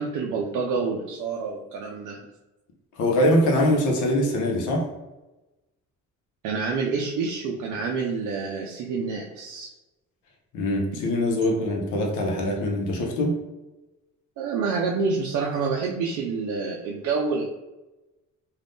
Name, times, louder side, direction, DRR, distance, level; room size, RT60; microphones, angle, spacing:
voice 1, 0.0-2.2 6.4-9.7 14.4-17.5, right 4 dB, 85° right, -1 dB, 0.5 m, -28 dB
voice 2, 3.0-4.9 10.5-13.3, left 1 dB, 85° left, 0 dB, 0.7 m, -23 dB
2.6 x 2.3 x 3.4 m, 1.0 s
cardioid pair, 90°, 30 cm